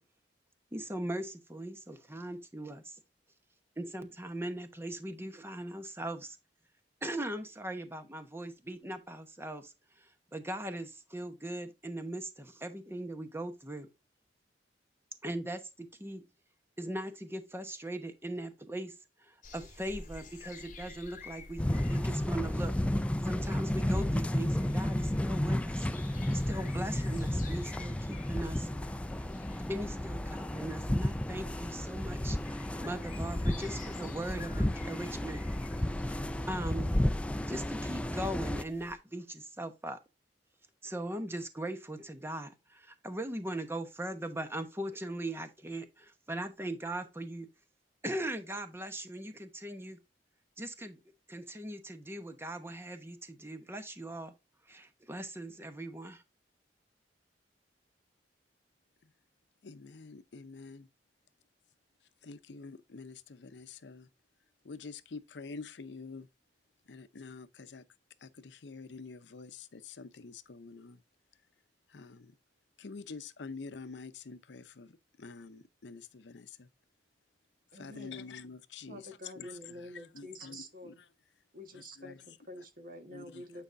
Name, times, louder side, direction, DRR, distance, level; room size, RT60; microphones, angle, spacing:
voice 1, 0.7-3.0 3.8-6.4 7.0-9.7 10.0-13.9 15.2-16.2 16.8-18.9 19.2-22.7 23.2-25.9 26.3-28.7 29.7-32.4 32.8-35.4 36.5-36.9 37.5-40.0 40.8-47.5 48.0-50.0 50.6-51.0 51.3-54.3 54.7-56.2, right 1 dB, 15° right, 1.0 m, -39 dB
sound 1, 19.4-38.9, left 3 dB, 45° left, 2.1 m, -51 dB
sound 2, 21.6-38.6, left 1 dB, 5° left, 0.3 m, -32 dB
voice 2, 59.6-60.9 62.2-64.1 64.6-66.3 66.9-67.8 68.2-71.0 71.9-72.3 72.8-74.9 75.2-76.7 77.7-80.9 81.7-82.2 83.1-83.4, left 4 dB, 75° left, 0.6 m, -47 dB
voice 3, 77.7-78.2 78.9-81.0 81.5-83.6, equal, 50° right, 1.5 m, -47 dB
9.0 x 4.8 x 2.6 m
head